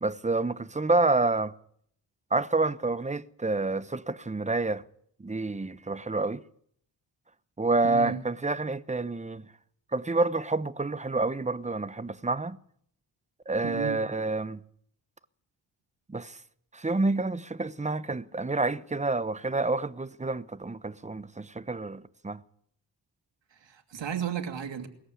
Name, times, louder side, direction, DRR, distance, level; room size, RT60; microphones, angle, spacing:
voice 1, 0.0-1.5 2.3-4.8 5.2-6.4 7.6-9.4 9.9-12.6 13.5-14.6 16.1-16.4 16.7-22.4, right 3 dB, 15° right, 0.9 m, -28 dB
voice 2, 7.8-8.2 13.6-14.0 23.5-24.9, right 7 dB, 75° right, 2.8 m, -34 dB
20.5 x 14.5 x 9.8 m
wide cardioid pair, 115°, 44 cm